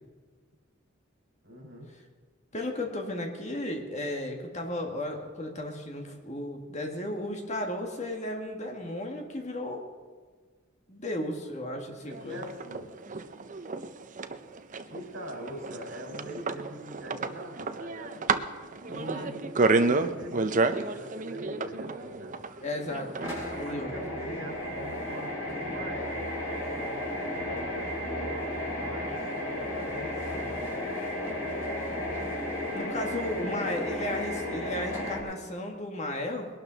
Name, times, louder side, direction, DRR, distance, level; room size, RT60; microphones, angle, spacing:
voice 1, 1.4-1.9 12.1-12.9 14.8-18.3 18.7-22.4 23.6-27.7 28.0-30.6, equal, 65° right, 0 dB, 4.4 m, -43 dB
voice 2, 2.5-9.8 10.9-12.4 18.9-19.3 22.6-23.9 32.7-36.5, left 1 dB, 35° left, 2 dB, 1.7 m, -34 dB
sound 1, 12.1-23.7, right 3 dB, 40° right, 0.6 m, -30 dB
sound 2, 23.2-35.2, left 1 dB, 90° left, 4.1 m, -33 dB
21.5 x 12.0 x 4.0 m, 1.5 s
head